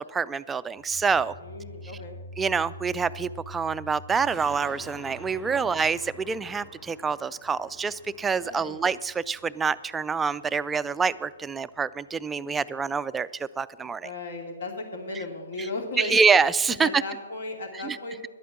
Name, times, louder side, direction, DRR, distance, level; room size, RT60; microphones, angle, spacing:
voice 1, 0.0-1.3 2.4-14.1 16.0-17.0 17.8-18.0, right 5 dB, 10° right, 14 dB, 0.3 m, -26 dB
sound 1, 0.8-9.6, left 1 dB, 30° left, 1.9 m, -47 dB
voice 2, 1.4-2.2 8.4-8.8 14.0-16.2 16.7-18.3, left 2 dB, 60° left, 3 dB, 2.6 m, -36 dB
sound 2, 4.3-11.0 11.4-11.5, left 2 dB, 15° left, 2.5 m, -50 dB
11.5 x 8.5 x 7.3 m, 1.2 s
hypercardioid pair, 130°, 0 cm